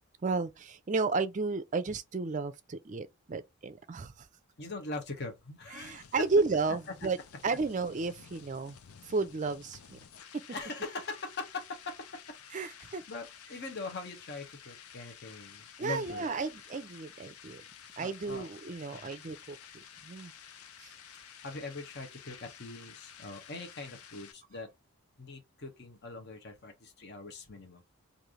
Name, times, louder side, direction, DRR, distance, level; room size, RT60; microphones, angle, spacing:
voice 1, 0.2-4.3 5.7-7.2 7.4-8.8 9.0-10.0 12.5-13.0 15.8-17.6 18.0-20.3 20.8-20.9, right 4 dB, 35° right, 0.4 m, -33 dB
voice 2, 4.6-6.1 10.5-11.9 12.5-12.7 13.1-16.3 18.0-18.5 18.9-19.1 21.4-24.7 25.2-27.8, left 3 dB, 50° left, 0.9 m, -42 dB
sound 1, 4.8-24.3, left 8 dB, 85° left, 0.6 m, -52 dB
3.2 x 2.6 x 3.7 m
head